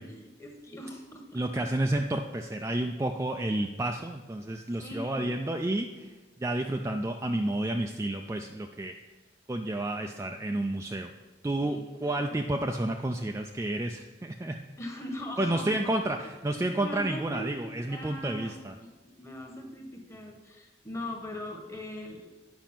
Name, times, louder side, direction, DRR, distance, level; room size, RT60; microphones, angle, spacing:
voice 1, 0.0-1.6 4.8-5.4 11.6-12.4 14.8-18.6 19.2-22.3, left 1 dB, 15° left, 2 dB, 1.1 m, -41 dB
voice 2, 1.3-8.9 9.5-11.1 11.4-14.6 15.4-18.7, right 1 dB, 15° right, 3 dB, 0.3 m, -30 dB
9.0 x 5.2 x 5.8 m, 1.2 s
head